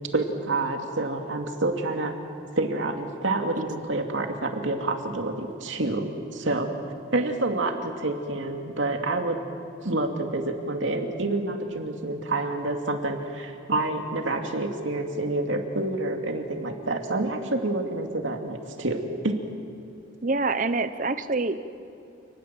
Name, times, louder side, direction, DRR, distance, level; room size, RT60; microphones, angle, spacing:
voice 1, 0.1-2.2 2.6-6.7 7.1-9.4 9.8-19.4, right 2 dB, 80° right, 4 dB, 2.5 m, -28 dB
voice 2, 20.2-21.6, right 3 dB, 40° right, 12 dB, 0.9 m, -25 dB
29.0 x 20.0 x 7.7 m, 2.7 s
head